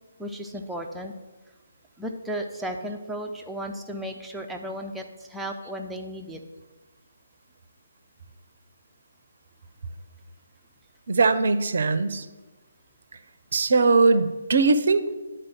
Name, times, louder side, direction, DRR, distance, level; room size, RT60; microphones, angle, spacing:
voice 1, 0.2-1.1 2.0-6.4, equal, 5° right, 2 dB, 0.7 m, -34 dB
voice 2, 11.1-12.3 13.5-15.2, right 3 dB, 50° right, 11 dB, 0.6 m, -20 dB
10.0 x 4.4 x 6.2 m, 1.2 s
figure-of-eight pair, 140°, 0 cm